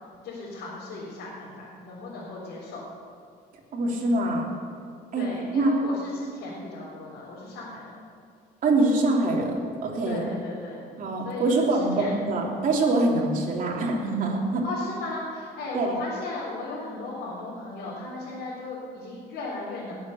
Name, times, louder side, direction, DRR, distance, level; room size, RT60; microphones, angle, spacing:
voice 1, 0.2-2.8 5.2-8.0 10.1-10.9 11.2-11.6 12.0-12.1 14.6-19.9, left 3 dB, 85° left, -7 dB, 3.9 m, -36 dB
voice 2, 3.7-4.5 5.1-5.3 5.5-5.7 8.6-10.3 11.0-14.6 15.7-16.0, right 2 dB, 50° right, -2 dB, 3.3 m, -24 dB
19.5 x 8.0 x 6.7 m, 2.2 s
cardioid pair, 110°, 17 cm